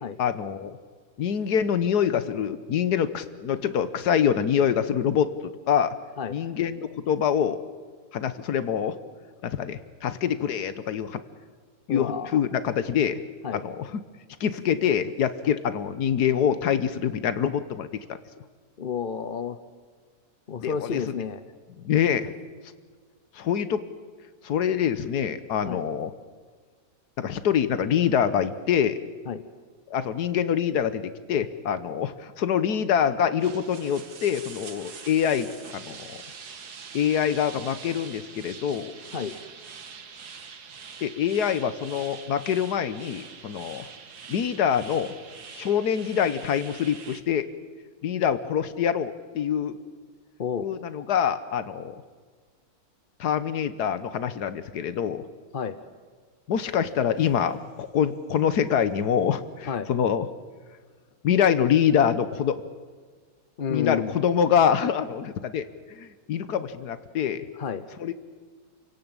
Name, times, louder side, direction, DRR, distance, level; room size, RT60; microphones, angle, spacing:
voice 1, 0.2-0.8 1.2-5.9 6.3-7.6 8.1-9.0 9.4-11.2 11.9-13.2 13.6-13.9 14.4-18.2 20.6-21.0 21.8-22.3 23.4-23.8 24.4-26.1 27.2-29.0 29.9-35.5 35.7-36.2 36.9-38.9 41.0-43.9 44.3-45.1 45.5-47.5 48.0-49.8 50.6-51.9 53.2-55.2 56.5-60.3 61.2-62.6 63.7-67.4 68.0-68.1, left 8 dB, 85° left, 13 dB, 1.6 m, -25 dB
voice 2, 11.9-12.4 13.4-13.6 18.8-19.6 20.5-21.4 25.6-25.8 29.3-29.4 39.1-39.3 50.4-50.7 55.5-55.8 59.7-59.9 63.6-64.2 67.6-67.8, left 6 dB, 45° left, 12 dB, 0.8 m, -31 dB
sound 1, 33.4-47.2, right 6 dB, 85° right, 2.0 m, -44 dB
28.5 x 17.0 x 8.9 m, 1.5 s
omnidirectional pair, 1.7 m